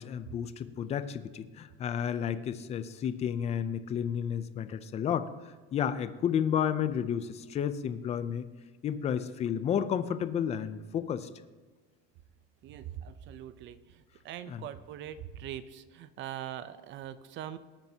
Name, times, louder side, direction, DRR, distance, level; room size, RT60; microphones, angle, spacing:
voice 1, 0.0-5.3 5.7-8.5 8.8-11.3 14.5-14.7, left 8 dB, 20° left, 12 dB, 0.4 m, -31 dB
voice 2, 12.6-17.6, right 11 dB, 35° right, 13 dB, 0.5 m, -42 dB
19.0 x 8.9 x 2.8 m, 1.3 s
cardioid pair, 160°, 31 cm